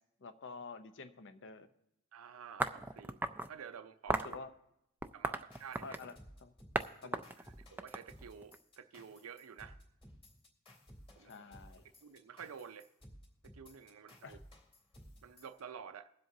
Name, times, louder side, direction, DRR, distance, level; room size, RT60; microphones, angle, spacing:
voice 1, 0.2-1.7 4.1-4.5 5.8-6.5 7.0-7.2 11.2-11.8 14.2-14.4, left 4 dB, 55° left, 10 dB, 0.7 m, -49 dB
voice 2, 2.1-3.2 3.5-4.2 5.1-6.0 7.7-9.8 11.2-11.3 12.0-12.9 13.5-14.4 15.2-16.1, right 7 dB, 70° right, 9 dB, 0.5 m, -50 dB
sound 1, 2.6-3.5 4.1-4.4 5.0-6.1 6.7-6.9 7.1-8.5, right 2 dB, 10° right, 0.3 m, -36 dB
sound 2, 5.5-15.6, equal, 25° left, 2.6 m, -58 dB
22.0 x 7.7 x 2.7 m, 0.81 s
head